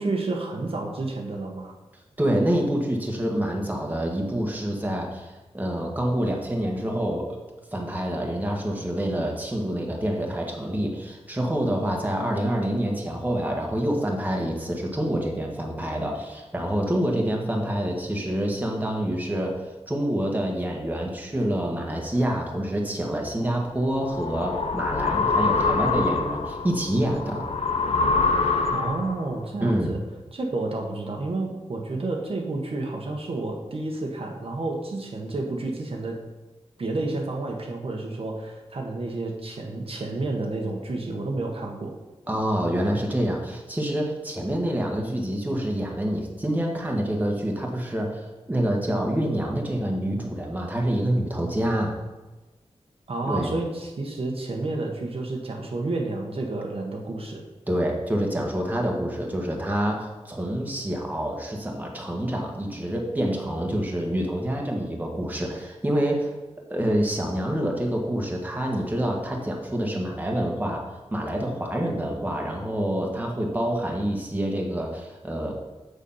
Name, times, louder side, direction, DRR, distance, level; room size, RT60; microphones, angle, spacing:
voice 1, 0.0-1.7 28.7-30.0 30.3-36.2 36.8-42.0 53.1-57.4, right 2 dB, 60° right, 0 dB, 1.3 m, -30 dB
voice 2, 2.2-7.3 7.7-19.6 19.9-27.5 29.6-29.9 42.3-51.9 53.3-53.5 57.7-66.3 66.7-75.5, right 1 dB, 15° right, 0 dB, 1.4 m, -27 dB
sound 1, 23.5-29.3, left 4 dB, 70° left, 0.7 m, -25 dB
7.1 x 6.7 x 5.6 m, 1.2 s
wide cardioid pair, 110°, 11 cm